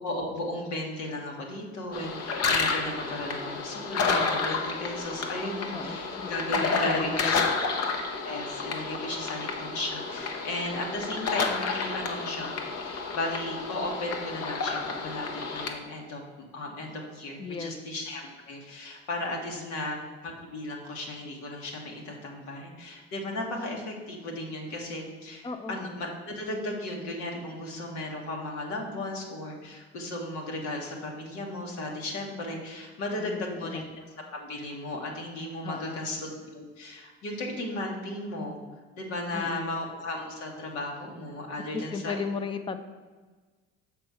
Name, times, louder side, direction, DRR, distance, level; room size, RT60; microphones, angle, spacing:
voice 1, 0.0-7.4 8.2-15.3 15.5-16.2 16.5-34.0 34.3-38.6 39.0-42.2, left 1 dB, 75° left, 0 dB, 1.6 m, -35 dB
sound 1, 1.9-15.7, left 4 dB, 55° left, 1.1 m, -30 dB
voice 2, 5.7-7.5 17.4-17.7 19.5-19.8 25.4-25.8 33.2-33.9 35.6-36.0 39.3-39.7 41.7-42.8, left 5 dB, 15° left, 9 dB, 0.5 m, -36 dB
6.1 x 4.5 x 5.7 m, 1.4 s
supercardioid pair, 70°, 29 cm